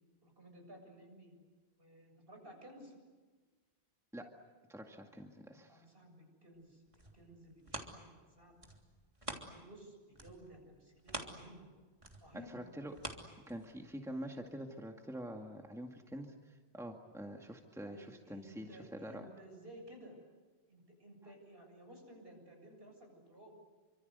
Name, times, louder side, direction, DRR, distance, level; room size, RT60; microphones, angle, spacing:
voice 1, 0.2-1.4 1.8-3.0 5.7-6.8 7.1-8.6 9.3-11.7 12.2-12.6 17.8-20.2 20.7-23.5, right 1 dB, 60° right, 3 dB, 7.7 m, -56 dB
voice 2, 4.7-5.9 12.5-12.9 13.5-19.3, equal, 5° right, 2 dB, 2.0 m, -46 dB
sound 1, 6.7-9.8 10.1-13.9 14.4-14.5, right 1 dB, 30° right, 3.3 m, -47 dB
28.5 x 25.5 x 8.2 m, 1.3 s
omnidirectional pair, 1.1 m